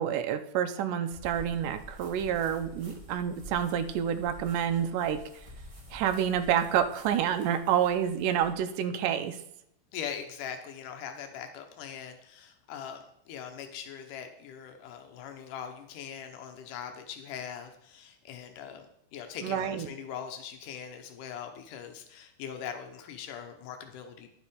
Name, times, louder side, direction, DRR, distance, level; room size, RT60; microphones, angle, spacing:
voice 1, 0.0-5.2 5.9-9.4 19.4-19.9, right 9 dB, 90° right, 9 dB, 2.3 m, -28 dB
sound 1, 1.1-8.5, equal, 20° right, 0.8 m, -49 dB
voice 2, 9.9-18.9 19.1-24.3, left 8 dB, 90° left, 5 dB, 2.5 m, -41 dB
10.5 x 7.3 x 5.0 m, 0.74 s
omnidirectional pair, 3.6 m